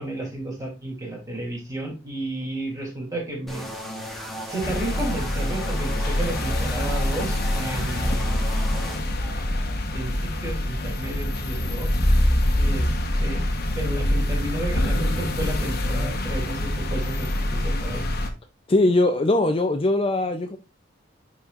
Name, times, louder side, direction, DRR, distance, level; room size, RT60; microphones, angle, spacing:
voice 1, 0.0-3.7 4.5-11.9 12.6-13.4 13.8-18.0, right 1 dB, 20° right, -1 dB, 2.9 m, -33 dB
sound 1, 3.5-9.0, equal, ahead, 1.4 m, -35 dB
sound 2, 4.6-18.3, left 1 dB, 55° left, 1.1 m, -25 dB
voice 2, 18.7-20.6, left 2 dB, 30° left, 6 dB, 0.5 m, -21 dB
10.5 x 4.2 x 2.5 m, 0.28 s
head